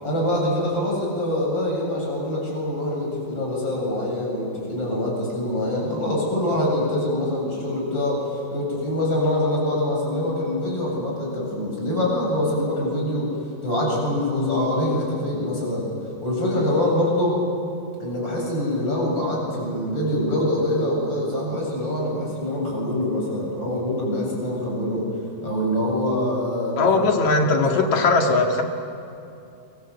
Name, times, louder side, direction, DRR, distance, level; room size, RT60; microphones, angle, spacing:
voice 1, 0.0-13.3 13.6-15.9 16.2-17.4 18.0-25.1 25.4-26.9 27.5-27.9, left 1 dB, 30° left, -2 dB, 8.6 m, -24 dB
voice 2, 26.8-28.6, left 3 dB, 55° left, 2 dB, 3.0 m, -19 dB
28.0 x 24.5 x 8.1 m, 2.6 s
omnidirectional pair, 4.3 m